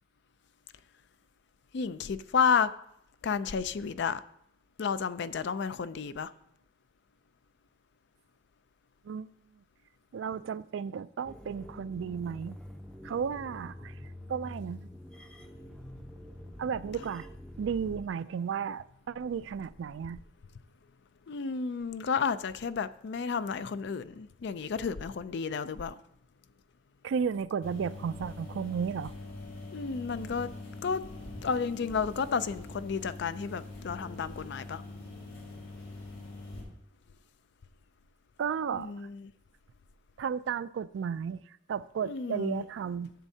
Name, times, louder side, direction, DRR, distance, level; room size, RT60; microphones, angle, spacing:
voice 1, 1.7-2.7 3.2-4.2 4.8-6.3 21.3-25.9 29.7-30.5 30.8-31.0 31.4-34.8 38.7-39.3 42.1-42.6, left 6 dB, 65° left, 0.4 m, -31 dB
voice 2, 10.1-12.6 13.0-13.9 14.3-14.9 16.6-17.3 17.6-20.2 27.0-29.1 38.4-38.9 40.2-43.1, right 7 dB, 80° right, 0.3 m, -34 dB
sound 1, 11.2-18.1, left 1 dB, 5° left, 0.5 m, -46 dB
sound 2, 27.6-36.6, left 2 dB, 90° left, 2.9 m, -44 dB
13.0 x 7.1 x 2.8 m
head